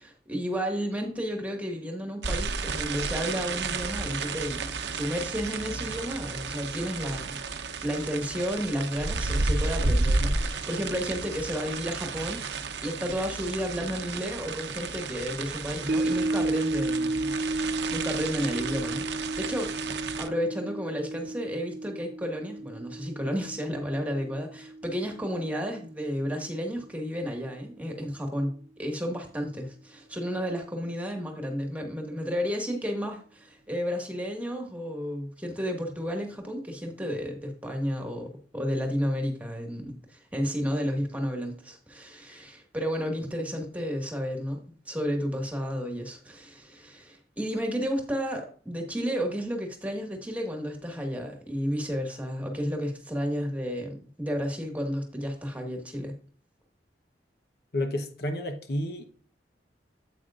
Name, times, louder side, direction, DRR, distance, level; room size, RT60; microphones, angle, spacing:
voice 1, 0.0-7.4 7.8-44.6 44.8-56.2, equal, 10° right, 1.7 m, -32 dB
sound 1, 2.2-20.3, right 3 dB, 75° right, 0.8 m, -32 dB
sound 2, 15.9-26.3 26.6-26.7, right 2 dB, 55° right, 0.4 m, -33 dB
voice 2, 57.7-59.0, left 1 dB, 60° left, 1.0 m, -30 dB
9.3 x 8.3 x 2.5 m
head